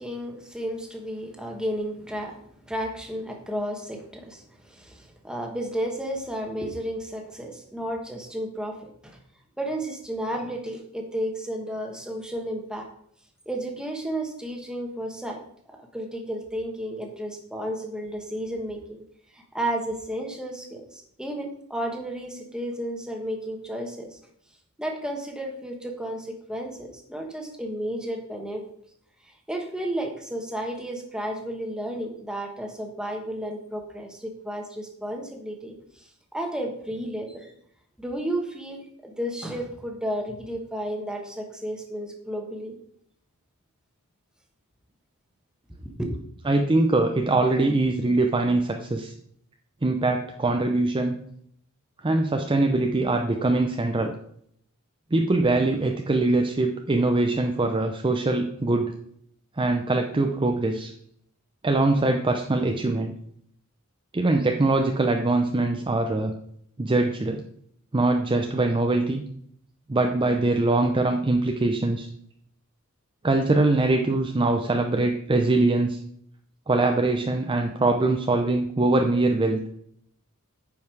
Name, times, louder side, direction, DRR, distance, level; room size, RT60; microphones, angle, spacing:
voice 1, 0.0-9.2 9.6-12.9 13.5-15.4 15.7-19.0 19.3-24.2 24.8-28.6 29.5-36.1 36.3-37.5 38.0-42.8 45.8-46.1, right 1 dB, 5° right, 2 dB, 1.3 m, -32 dB
voice 2, 46.5-49.1 49.8-51.1 52.0-54.1 55.1-58.9 59.6-60.9 61.6-63.1 64.1-66.3 66.8-67.4 67.9-69.2 69.9-72.1 73.2-76.0 76.7-79.6, right 2 dB, 25° right, 3 dB, 0.6 m, -23 dB
9.5 x 5.4 x 4.6 m, 0.68 s
head